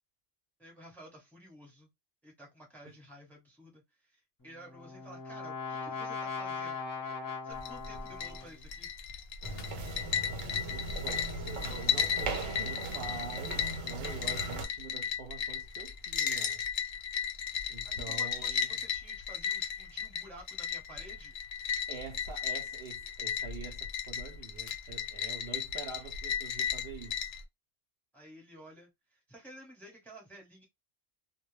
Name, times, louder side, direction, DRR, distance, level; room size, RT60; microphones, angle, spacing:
voice 1, 0.6-1.9 2.2-6.8 7.4-8.9 17.8-21.3 28.1-30.6, right 1 dB, ahead, 0.8 m, -52 dB
Brass instrument, 4.4-8.6, left 5 dB, 20° left, 0.6 m, -39 dB
sound 1, 7.5-27.4, left 7 dB, 65° left, 0.7 m, -35 dB
sound 2, 9.4-14.6, right 2 dB, 85° right, 1.1 m, -38 dB
voice 2, 10.7-16.6 17.7-18.7 21.9-27.2, right 5 dB, 65° right, 0.7 m, -45 dB
2.2 x 2.1 x 3.1 m
omnidirectional pair, 1.3 m